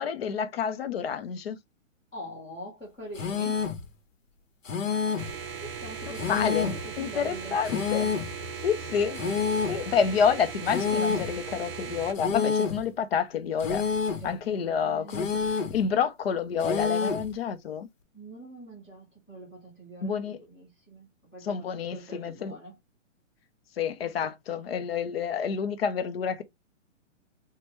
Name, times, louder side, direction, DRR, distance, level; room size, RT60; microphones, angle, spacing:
voice 1, 0.0-1.6 6.3-8.1 8.6-9.2 9.7-13.8 14.2-15.3 15.7-17.9 20.0-20.4 21.4-22.6 23.8-26.4, left 7 dB, 50° left, 0.5 m, -28 dB
voice 2, 2.1-3.7 5.1-5.3 5.6-7.6 14.1-15.3 18.1-22.7, right 1 dB, 10° left, 0.9 m, -44 dB
sound 1, 3.2-3.9 4.7-5.4 6.2-6.9 7.7-8.4 9.2-9.9 10.7-11.4 12.2-12.9 13.6-14.3 15.1-15.8 16.6-17.3, left 6 dB, 85° left, 0.9 m, -28 dB
sound 2, 5.2-12.1, right 5 dB, 50° right, 0.6 m, -38 dB
3.2 x 2.2 x 2.9 m
hypercardioid pair, 165°, 38 cm